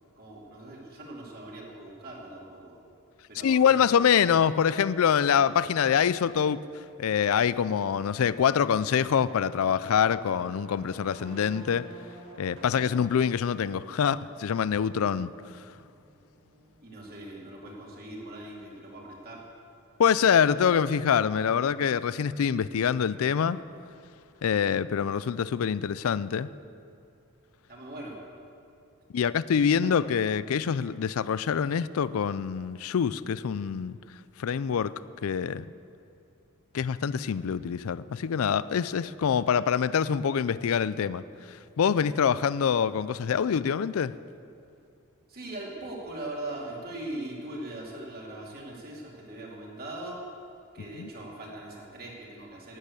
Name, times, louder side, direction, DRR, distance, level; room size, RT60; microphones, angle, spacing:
voice 1, 0.2-2.7 3.3-4.0 16.8-19.4 27.7-28.2 29.8-29.9 45.3-50.3 50.7-52.8, right 1 dB, 45° right, -2 dB, 2.5 m, -40 dB
voice 2, 3.4-11.9 12.4-15.3 20.0-23.6 24.4-26.5 29.1-34.0 34.4-34.9 35.2-35.7 36.7-44.1 51.0-51.1, left 7 dB, 70° left, 17 dB, 0.4 m, -25 dB
sound 1, 7.4-16.8, right 1 dB, 65° right, 3.8 m, -51 dB
11.5 x 8.9 x 8.3 m, 2.5 s
head